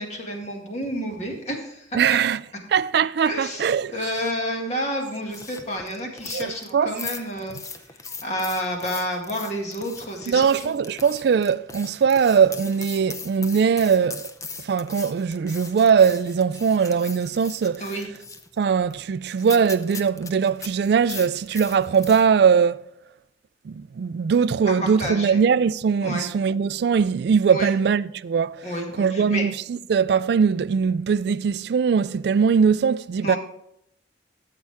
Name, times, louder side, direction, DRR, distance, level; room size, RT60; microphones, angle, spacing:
voice 1, 0.0-2.0 3.2-7.5 8.2-10.7 17.8-18.1 24.8-25.4 26.0-26.3 27.5-27.7 28.6-29.4 33.2-33.4, equal, 40° left, 2.1 m, -30 dB
voice 2, 1.9-2.4 2.7-3.9 6.3-7.0 10.3-14.3 14.6-17.8 18.6-22.8 23.7-28.7 29.0-33.4, right 6 dB, 60° right, 0.3 m, -21 dB
sound 1, 5.2-22.3, left 4 dB, 15° left, 0.6 m, -40 dB
13.5 x 7.6 x 3.5 m
head